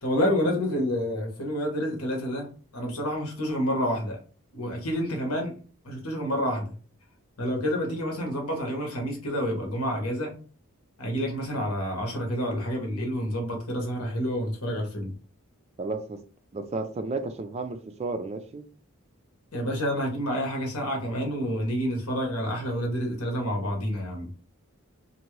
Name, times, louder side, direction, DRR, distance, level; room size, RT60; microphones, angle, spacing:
voice 1, 0.0-4.2 4.5-5.5 5.8-6.7 7.4-10.3 11.0-15.1 19.5-24.3, equal, 85° left, 1.2 m, -28 dB
voice 2, 15.8-16.2 16.5-18.6, right 3 dB, 30° right, 0.3 m, -32 dB
2.7 x 2.6 x 3.1 m
head